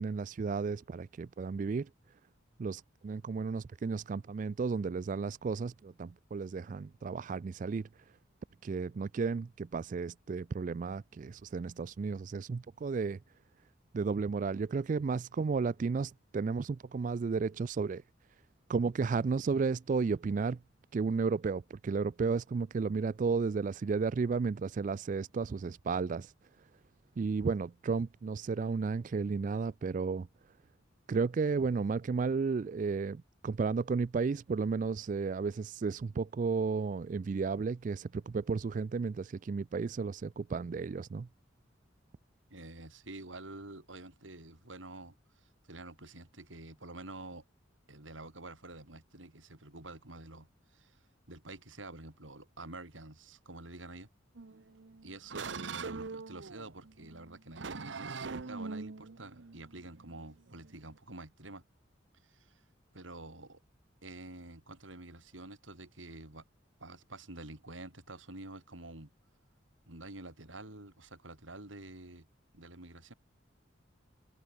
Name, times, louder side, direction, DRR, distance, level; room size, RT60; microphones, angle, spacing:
voice 1, 0.0-1.9 2.6-7.9 8.6-13.2 13.9-18.0 18.7-20.6 20.9-26.3 27.2-30.3 31.1-41.3, right 4 dB, 40° right, 0.3 m, -33 dB
voice 2, 42.5-45.1 45.4-47.4 47.9-51.0 51.3-54.1 55.0-61.6 62.2-62.6 62.9-63.6 64.0-66.4 66.8-69.1 69.9-72.3 72.5-73.1, right 2 dB, 90° right, 4.7 m, -48 dB
sound 1, 54.3-60.9, right 4 dB, 70° right, 0.8 m, -43 dB
head